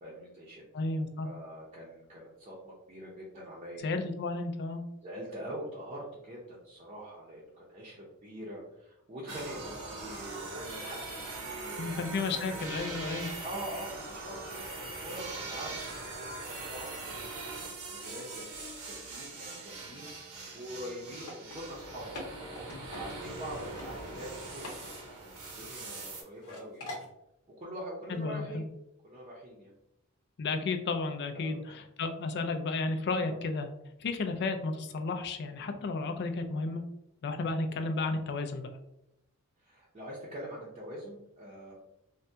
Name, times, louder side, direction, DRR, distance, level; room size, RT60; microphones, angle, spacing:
voice 1, 0.0-0.6 1.2-3.9 5.0-12.5 13.4-16.4 16.7-17.3 17.6-22.1 22.9-24.9 25.2-26.9 27.5-28.7 29.0-29.7 31.3-31.7 33.2-33.4 39.6-41.7, right 1 dB, 30° right, -6 dB, 0.6 m, -44 dB
voice 2, 0.7-1.3 3.8-4.8 11.8-13.3 28.1-28.7 30.4-33.7 34.0-36.8 37.2-38.7, left 3 dB, 50° left, 6 dB, 0.4 m, -33 dB
sound 1, 9.3-26.2, right 2 dB, 80° right, 0.8 m, -41 dB
sound 2, 21.1-23.5 23.8-23.9 24.2-24.8 25.0-26.1 26.4-27.1, left 1 dB, 70° left, 0.8 m, -44 dB
3.3 x 2.2 x 2.7 m, 0.84 s
head